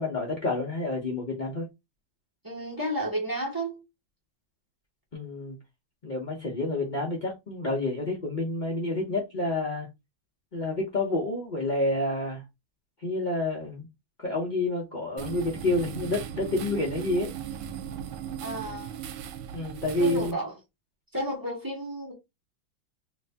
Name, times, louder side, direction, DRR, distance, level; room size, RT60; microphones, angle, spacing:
voice 1, 0.0-1.7 5.1-5.6 6.0-9.9 10.5-12.4 13.0-13.9 14.2-17.3 19.5-20.3, left 2 dB, 65° left, 0.4 m, -29 dB
voice 2, 2.4-3.8 18.4-18.9 20.0-20.5 21.1-22.1, right 1 dB, 10° right, 1.1 m, -32 dB
sound 1, 15.2-20.3, right 9 dB, 85° right, 1.4 m, -38 dB
3.2 x 2.7 x 3.4 m
omnidirectional pair, 2.2 m